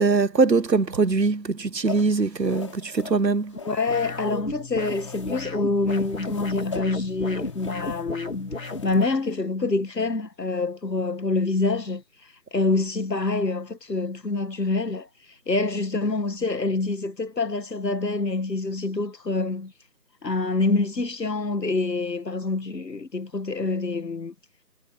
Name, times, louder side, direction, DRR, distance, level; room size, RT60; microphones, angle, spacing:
voice 1, 0.0-3.6, right 4 dB, 80° right, 1.4 m, -22 dB
sound 1, 1.9-4.4 4.8-5.5 5.9-9.3, left 5 dB, 20° left, 5.1 m, -41 dB
voice 2, 3.6-8.5 8.8-12.0 12.5-15.1 15.5-19.7 20.2-24.3, left 3 dB, 75° left, 1.9 m, -26 dB
sound 2, 3.9-9.2, left 2 dB, 50° left, 3.2 m, -34 dB
figure-of-eight pair, 175°, 49 cm